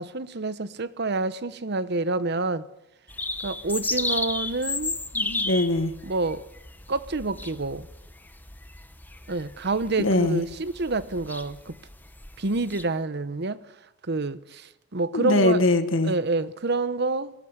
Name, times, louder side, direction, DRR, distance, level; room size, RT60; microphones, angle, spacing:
voice 1, 0.0-2.7 3.4-5.0 6.0-6.4 6.9-7.9 9.3-11.8 12.4-13.6 14.1-15.6 16.0-17.3, right 3 dB, 55° right, 1.0 m, -28 dB
sound 1, 3.1-12.8, left 2 dB, 10° left, 1.1 m, -34 dB
voice 2, 5.1-5.9 10.0-10.4 15.1-16.1, left 2 dB, 80° left, 1.6 m, -22 dB
22.0 x 19.0 x 7.9 m
head